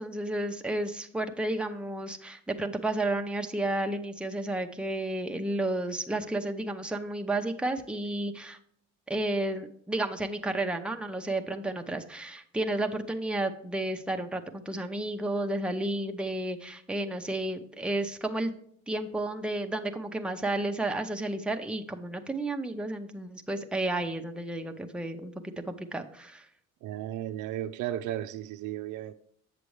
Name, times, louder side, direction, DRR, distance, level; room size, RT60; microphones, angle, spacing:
voice 1, 0.0-8.6 9.1-18.5 18.9-26.5, right 2 dB, 5° right, 0.7 m, -32 dB
voice 2, 26.8-29.1, right 13 dB, 80° right, 0.5 m, -34 dB
8.1 x 6.7 x 3.2 m
cardioid pair, 90°, 30 cm